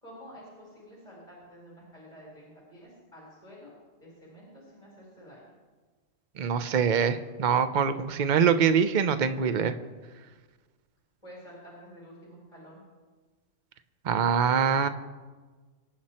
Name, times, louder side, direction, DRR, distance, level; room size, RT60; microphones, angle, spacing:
voice 1, 0.0-3.7 4.0-5.5 11.2-12.8, equal, 25° left, -4 dB, 4.2 m, -49 dB
voice 2, 6.4-9.7 14.0-14.9, right 7 dB, 45° right, 10 dB, 0.8 m, -24 dB
24.5 x 9.5 x 4.4 m, 1.4 s
omnidirectional pair, 1.3 m